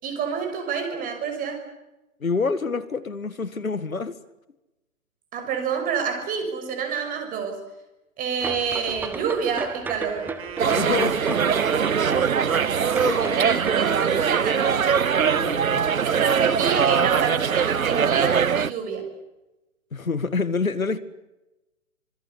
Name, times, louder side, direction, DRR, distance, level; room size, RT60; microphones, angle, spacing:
voice 1, 0.0-1.6 5.3-7.6 8.2-10.3 13.2-15.0 16.0-19.1, right 6 dB, 20° right, 6 dB, 6.3 m, -28 dB
voice 2, 2.2-4.2 10.7-11.5 13.0-13.4 15.3-16.0 19.9-21.0, left 4 dB, 85° left, 14 dB, 2.1 m, -27 dB
sound 1, 8.4-13.7, right 4 dB, 5° right, 0.9 m, -34 dB
Wind instrument woodwind instrument, 10.0-16.7, right 8 dB, 50° right, 6.1 m, -40 dB
sound 2, 10.6-18.7, right 7 dB, 85° right, 0.9 m, -22 dB
26.0 x 24.5 x 8.4 m, 0.96 s
figure-of-eight pair, 130°, 40 cm